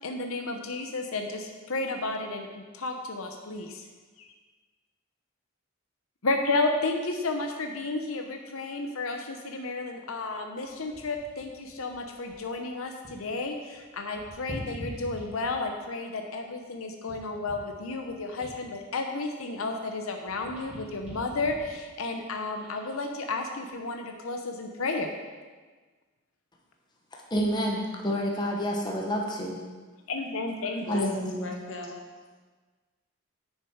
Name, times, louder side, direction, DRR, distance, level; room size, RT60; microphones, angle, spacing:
voice 1, 0.0-3.9 4.2-4.3 6.2-25.1 30.1-31.1, left 3 dB, 90° left, 4 dB, 0.8 m, -32 dB
sound 1, 10.6-13.4 13.6-15.8 16.3-19.9 20.2-23.0 23.5-23.7, equal, 5° right, 3.1 m, -46 dB
voice 2, 27.3-29.6 30.9-31.5, equal, 20° left, -1 dB, 1.1 m, -29 dB
voice 3, 30.8-32.4, left 2 dB, 65° left, 1 dB, 1.4 m, -41 dB
9.9 x 6.5 x 4.7 m, 1.4 s
head